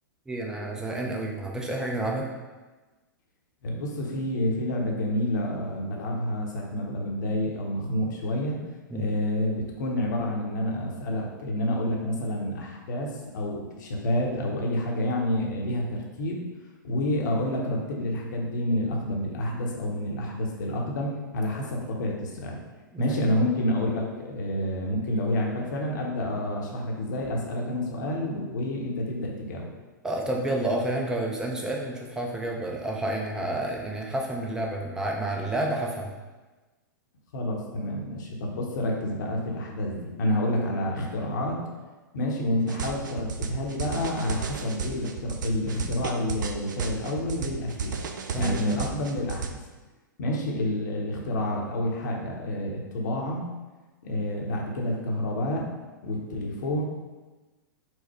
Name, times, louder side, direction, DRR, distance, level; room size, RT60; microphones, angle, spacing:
voice 1, 0.3-2.3 8.9-9.1 22.9-23.2 30.0-36.1 48.3-48.6, right 1 dB, 5° right, -1 dB, 0.5 m, -30 dB
voice 2, 3.6-8.6 8.9-16.5 16.8-22.6 23.0-29.7 37.3-41.6 42.1-48.0 48.4-49.4 50.2-53.4 54.0-55.6 56.0-56.8, left 1 dB, 60° left, -1 dB, 0.9 m, -29 dB
sound 1, 42.7-49.5, right 5 dB, 65° right, 0.4 m, -33 dB
4.6 x 2.1 x 4.2 m, 1.2 s
figure-of-eight pair, 105°, 11 cm